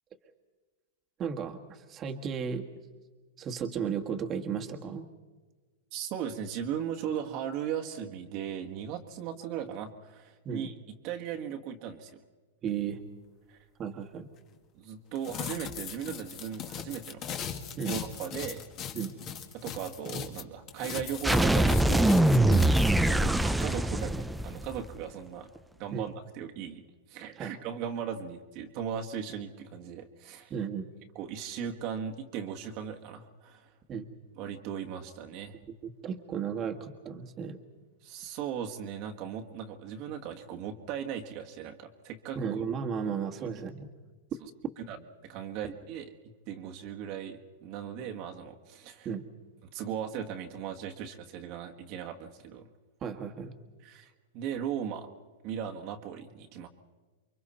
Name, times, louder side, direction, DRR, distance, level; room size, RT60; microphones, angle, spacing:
voice 1, 1.2-2.7 3.4-5.1 10.4-10.7 12.6-13.0 13.8-14.3 17.8-17.9 18.9-19.1 22.5-22.6 25.9-26.1 27.4-27.5 30.5-30.9 33.9-34.1 35.8-37.6 42.3-43.9 45.6-45.7 49.0-49.2 53.0-53.5, right 7 dB, 30° right, 3 dB, 1.6 m, -34 dB
voice 2, 5.9-12.2 13.5-13.6 14.7-17.2 17.8-18.6 19.5-22.1 23.1-25.5 25.8-26.8 27.1-30.5 31.1-33.7 34.4-35.6 38.0-42.4 43.4-43.5 44.9-45.0 45.2-46.1 46.5-49.1 49.7-52.7 53.8-55.1 55.4-56.7, right 8 dB, 45° right, 2 dB, 1.6 m, -37 dB
sound 1, 15.2-20.4 20.7-22.9, left 7 dB, 40° left, 2.0 m, -38 dB
sound 2, 21.2-24.9, right 1 dB, 5° right, 0.7 m, -23 dB
29.0 x 23.5 x 4.3 m, 1.3 s
hypercardioid pair, 120°, 0 cm